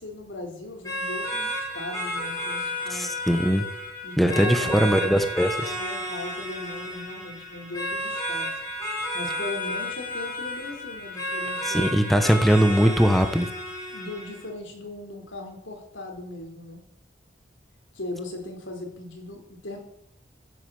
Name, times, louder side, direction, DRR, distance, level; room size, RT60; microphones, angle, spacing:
voice 1, 0.0-3.1 4.0-8.6 9.1-12.3 13.9-16.8 17.9-19.8, left 2 dB, 90° left, 3 dB, 3.9 m, -38 dB
sound 1, 0.8-14.4, equal, 20° left, 4.9 m, -32 dB
voice 2, 2.9-3.6 4.2-5.7 11.7-13.5, equal, ahead, 6 dB, 1.0 m, -21 dB
15.5 x 8.3 x 7.8 m, 0.76 s
head